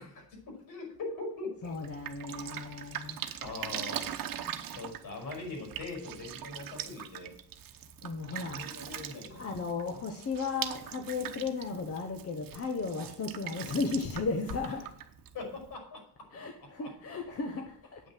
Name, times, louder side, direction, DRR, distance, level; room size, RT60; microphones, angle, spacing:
voice 1, 0.0-1.7 3.4-4.1 4.7-7.4 8.3-9.8 15.3-16.3 16.6-16.9, left 3 dB, 70° left, 2 dB, 5.6 m, -42 dB
voice 2, 1.6-3.2 8.0-8.7 9.3-14.9 16.3-18.0, left 4 dB, 40° left, 5 dB, 1.1 m, -35 dB
Drip, 1.6-15.7, right 10 dB, 70° right, 1.0 m, -42 dB
8.8 x 6.1 x 7.7 m, 0.67 s
cardioid pair, 150°, 36 cm